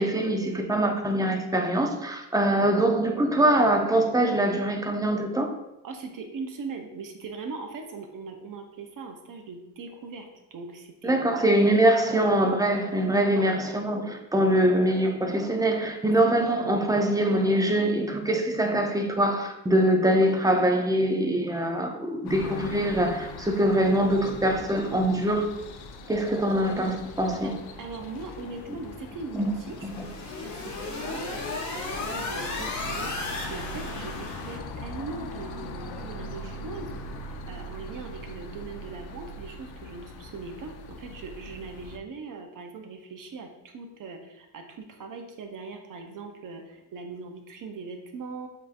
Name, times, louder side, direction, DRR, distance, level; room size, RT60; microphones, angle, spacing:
voice 1, 0.0-5.5 11.0-25.5 26.1-27.6 29.3-29.5 29.8-29.9, right 1 dB, 10° right, 3 dB, 0.6 m, -23 dB
voice 2, 5.8-11.7 12.0-12.3 13.3-13.5 27.8-37.0 37.5-48.5, right 4 dB, 45° right, 4 dB, 0.7 m, -40 dB
sound 1, 22.3-42.0, left 2 dB, 60° left, 0.7 m, -40 dB
sound 2, 29.6-34.6, left 3 dB, 40° left, 1.1 m, -35 dB
7.3 x 2.7 x 2.5 m, 0.91 s
cardioid pair, 85°, 44 cm